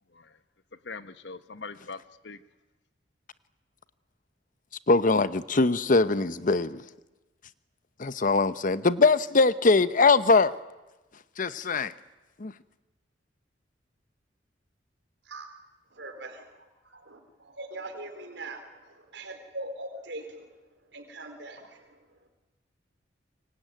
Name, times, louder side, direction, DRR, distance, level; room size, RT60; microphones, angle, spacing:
voice 1, 0.8-2.4, left 4 dB, 70° left, 13 dB, 1.1 m, -42 dB
voice 2, 4.9-6.8 8.0-10.6 11.4-11.9 12.4-12.5, left 3 dB, 50° left, 14 dB, 0.9 m, -22 dB
voice 3, 15.9-20.5 20.9-22.0, right 2 dB, 75° right, 5 dB, 4.3 m, -42 dB
25.5 x 23.5 x 9.2 m, 1.1 s
head